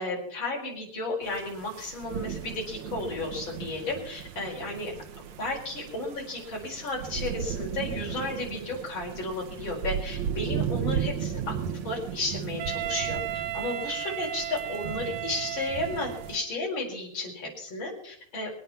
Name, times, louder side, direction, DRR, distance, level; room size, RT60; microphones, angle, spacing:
voice 1, 0.0-4.9 5.4-11.5 11.8-18.6, left 2 dB, 35° left, -2 dB, 5.1 m, -33 dB
sound 1, 1.2-16.4, right 8 dB, 65° right, 2.0 m, -36 dB
Wind instrument woodwind instrument, 12.6-16.4, right 14 dB, 85° right, 2.6 m, -34 dB
23.0 x 8.8 x 5.8 m, 0.68 s
omnidirectional pair, 4.0 m